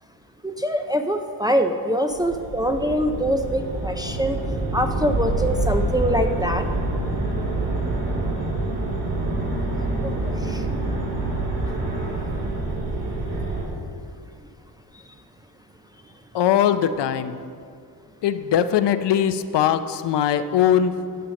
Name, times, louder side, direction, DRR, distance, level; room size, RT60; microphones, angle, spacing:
voice 1, 0.4-4.4 4.7-6.6 9.8-10.7 11.7-11.8, equal, 10° right, 4 dB, 0.4 m, -24 dB
sound 1, 2.1-13.6, right 2 dB, 80° right, 3.5 m, -26 dB
voice 2, 16.3-17.4 18.2-20.9, left 9 dB, 75° left, 10 dB, 0.7 m, -20 dB
10.5 x 9.0 x 6.3 m, 2.3 s
wide cardioid pair, 155°, 42 cm